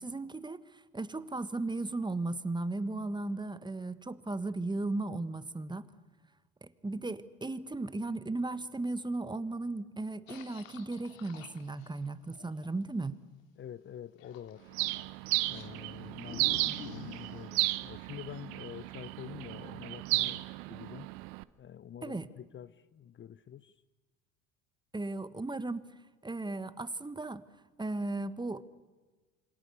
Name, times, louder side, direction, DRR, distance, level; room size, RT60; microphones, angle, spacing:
voice 1, 0.0-5.9 6.6-13.2 22.0-22.3 24.9-25.9 26.2-27.4 27.8-28.6, right 2 dB, 10° right, 1.4 m, -36 dB
sound 1, 10.3-12.7 14.2-15.1 15.5-17.5, left 6 dB, 80° left, 2.4 m, -49 dB
voice 2, 13.6-14.8 15.5-20.4 20.7-21.1 21.6-23.7, left 10 dB, 30° left, 0.8 m, -47 dB
Bird, 14.7-21.4, right 22 dB, 65° right, 1.0 m, -34 dB
27.5 x 25.0 x 6.9 m
hypercardioid pair, 70°, 40 cm